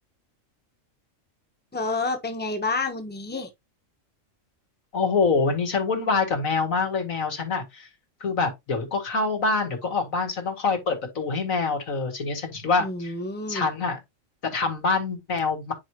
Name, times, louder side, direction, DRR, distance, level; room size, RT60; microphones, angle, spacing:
voice 1, 1.7-3.5 12.8-13.7, left 3 dB, 10° left, 1.0 m, -29 dB
voice 2, 4.9-7.9 8.2-13.1 13.5-14.0 14.4-15.7, left 4 dB, 90° left, 2.3 m, -25 dB
9.1 x 4.8 x 2.8 m
omnidirectional pair, 1.4 m